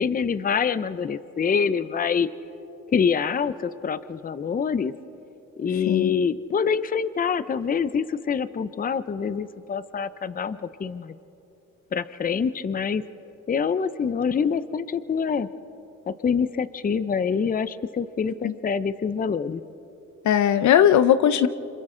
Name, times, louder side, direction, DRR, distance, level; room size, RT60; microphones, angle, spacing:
voice 1, 0.0-2.3 2.9-4.9 5.6-11.1 11.9-13.0 13.5-15.5 16.1-19.6, left 6 dB, 30° left, 14 dB, 0.6 m, -25 dB
voice 2, 20.2-21.5, left 10 dB, 70° left, 12 dB, 0.8 m, -18 dB
28.5 x 25.5 x 3.8 m, 2.9 s
cardioid pair, 90°, 30 cm